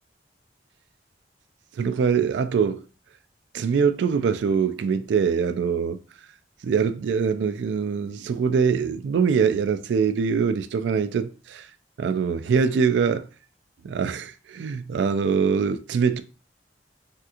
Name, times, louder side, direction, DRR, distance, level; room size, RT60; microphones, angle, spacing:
voice 1, 1.8-2.8 3.5-6.0 6.6-11.7 12.0-13.3 13.8-16.2, right 6 dB, 85° right, 0.3 m, -23 dB
3.5 x 2.8 x 2.4 m
head